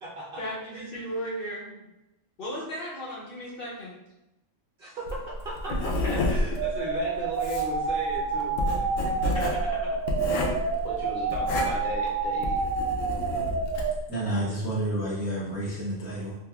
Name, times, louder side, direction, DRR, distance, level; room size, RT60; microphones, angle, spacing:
voice 1, 0.4-1.7 2.4-4.0 5.7-6.6 9.0-10.0, equal, 55° left, -4 dB, 0.8 m, -36 dB
voice 2, 4.8-5.2 5.4-5.7 6.3-8.8 10.8-12.7, right 1 dB, 50° right, -4 dB, 0.8 m, -37 dB
Writing, 5.1-14.0, left 2 dB, 80° left, 0.9 m, -30 dB
sound 1, 6.6-13.9, right 5 dB, 75° right, 0.9 m, -29 dB
voice 3, 14.1-16.4, right 1 dB, 20° right, -8 dB, 0.5 m, -30 dB
3.3 x 3.0 x 2.3 m, 0.94 s
omnidirectional pair, 1.3 m